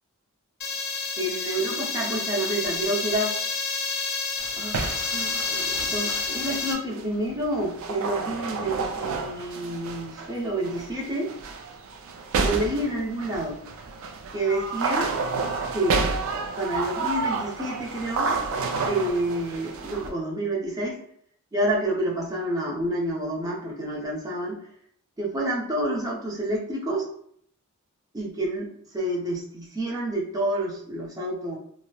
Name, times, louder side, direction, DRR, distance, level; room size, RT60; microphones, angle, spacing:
sound 1, 0.6-6.7, left 4 dB, 45° left, 0.4 m, -29 dB
voice 1, 1.2-3.4 4.6-4.8 5.1-11.3 12.4-13.6 14.3-15.1 15.7-16.1 16.6-18.4 18.9-21.0 21.5-24.6 25.2-27.1 28.1-31.6, right 1 dB, 15° right, -4 dB, 0.6 m, -28 dB
sound 2, 4.4-20.1, right 4 dB, 65° right, 0.3 m, -30 dB
2.8 x 2.0 x 2.2 m, 0.65 s
head